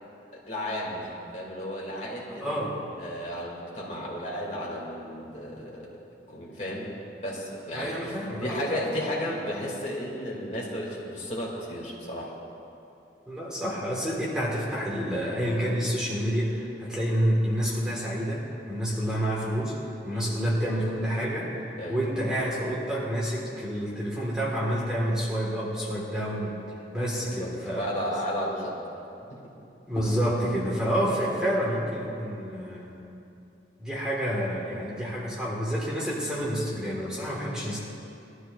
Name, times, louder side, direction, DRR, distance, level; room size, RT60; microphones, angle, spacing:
voice 1, 0.3-2.6 3.0-5.9 6.3-6.9 7.2-12.3 20.1-20.3 21.8-22.0 27.2-27.5 27.8-28.8 29.3-29.5 34.6-34.8, equal, 40° left, -4 dB, 2.7 m, -33 dB
voice 2, 2.4-2.8 7.7-8.8 13.3-19.8 20.0-26.6 26.9-27.9 29.9-32.9 33.8-37.8, equal, 5° right, -6 dB, 1.8 m, -28 dB
21.0 x 13.0 x 2.6 m, 2.7 s
head